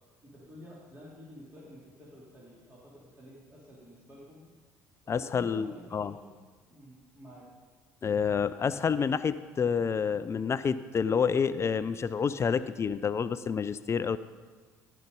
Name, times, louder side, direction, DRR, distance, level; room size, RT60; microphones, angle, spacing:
voice 1, 0.2-4.5 5.0-6.3 6.7-7.4, equal, 20° right, -7 dB, 3.0 m, -50 dB
voice 2, 5.1-6.1 8.0-14.2, left 6 dB, 35° left, 14 dB, 0.4 m, -28 dB
14.0 x 5.7 x 5.3 m, 1.4 s
hypercardioid pair, 55°, 8 cm